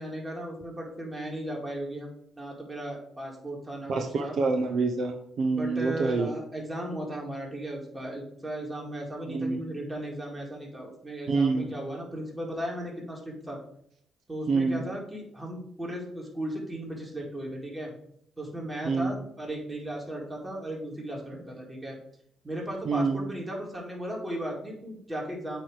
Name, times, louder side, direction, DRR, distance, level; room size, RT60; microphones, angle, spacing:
voice 1, 0.0-4.4 5.5-13.6 14.3-17.9 18.4-22.0 22.4-25.6, right 1 dB, 15° right, -1 dB, 2.1 m, -36 dB
voice 2, 3.9-6.3 9.3-9.6 11.3-11.7 14.5-14.9 18.8-19.1 22.8-23.3, right 4 dB, 65° right, 4 dB, 0.7 m, -27 dB
8.6 x 3.1 x 4.8 m, 0.70 s
cardioid pair, 90°, 0 cm